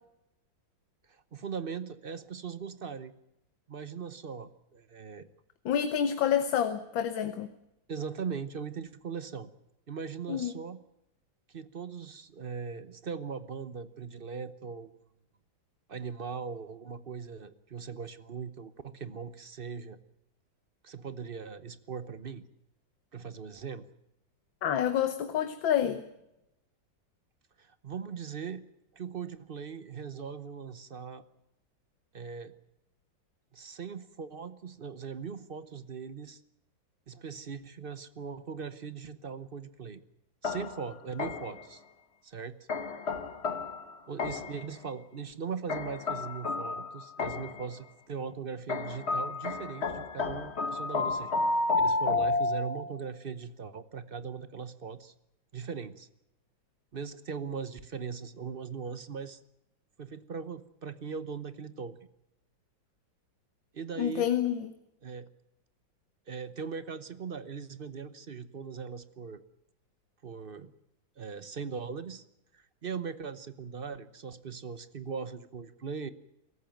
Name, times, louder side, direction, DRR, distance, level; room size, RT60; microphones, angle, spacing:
voice 1, 1.1-3.1 3.7-5.3 7.9-9.5 9.9-10.8 11.5-15.0 15.9-20.0 20.8-22.4 23.1-23.9 27.6-28.7 28.9-31.2 32.1-32.5 33.5-36.4 37.1-40.0 40.4-41.8 42.2-42.6 44.1-55.1 55.5-56.1 56.9-59.4 60.0-62.0 63.7-64.3 65.0-65.3 66.3-69.4 70.2-70.7 71.2-72.2 72.5-76.1, right 6 dB, 40° right, 13 dB, 0.8 m, -40 dB
voice 2, 5.7-7.5 10.3-10.5 24.6-26.1 64.0-64.7, left 9 dB, 85° left, 10 dB, 1.8 m, -28 dB
sound 1, 40.4-41.7 42.7-44.7 45.7-47.7 48.7-53.0, left 3 dB, 35° left, 1.5 m, -31 dB
23.5 x 14.0 x 9.2 m, 0.87 s
omnidirectional pair, 2.0 m